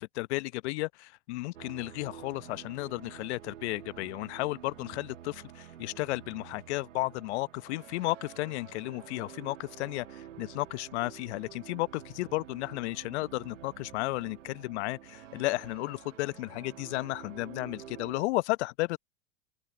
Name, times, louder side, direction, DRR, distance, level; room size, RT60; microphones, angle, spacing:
voice 1, 0.0-19.0, left 20 dB, 65° left, 0.9 m, -33 dB
sound 1, 1.5-18.2, right 10 dB, 85° right, 1.7 m, -49 dB
open air
hypercardioid pair, 95°, 37 cm